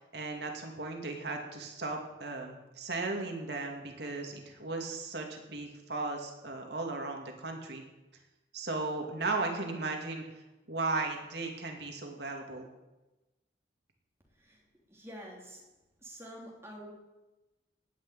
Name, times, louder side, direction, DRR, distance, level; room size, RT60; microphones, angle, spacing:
voice 1, 0.1-7.8 8.5-10.2 10.7-12.7, right 3 dB, 70° right, 2 dB, 2.5 m, -36 dB
voice 2, 14.9-15.7 16.0-16.9, equal, 15° right, -2 dB, 3.1 m, -47 dB
18.5 x 6.4 x 8.7 m, 1.0 s
head